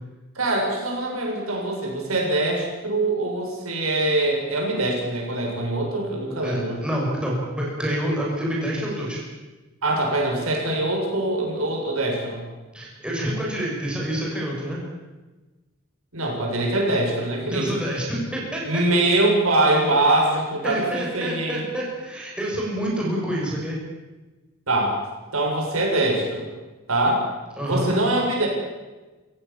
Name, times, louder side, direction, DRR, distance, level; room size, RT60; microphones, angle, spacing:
voice 1, 0.4-6.8 9.8-12.5 16.1-17.7 18.7-21.7 24.7-25.0 25.3-26.5 26.9-27.3 27.6-28.5, right 2 dB, 80° right, 0 dB, 7.3 m, -23 dB
voice 2, 6.4-9.2 12.7-14.8 17.4-18.8 20.6-23.8 27.6-27.9, equal, 5° right, -4 dB, 7.2 m, -27 dB
27.0 x 17.0 x 7.4 m, 1.2 s
head